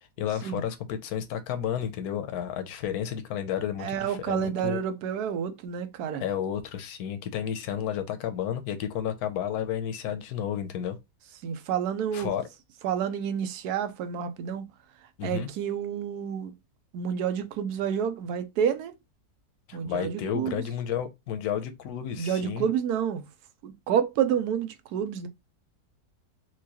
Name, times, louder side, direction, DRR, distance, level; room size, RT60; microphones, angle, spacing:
voice 1, 0.2-4.8 6.2-11.0 12.1-12.5 15.2-15.5 19.7-22.7, left 9 dB, 75° left, 1.1 m, -32 dB
voice 2, 3.8-6.2 11.4-12.3 12.8-14.7 15.2-16.5 16.9-18.9 19.7-20.6 22.2-23.2 23.6-25.3, right 8 dB, 80° right, 1.1 m, -29 dB
4.5 x 2.2 x 2.9 m
omnidirectional pair, 1.7 m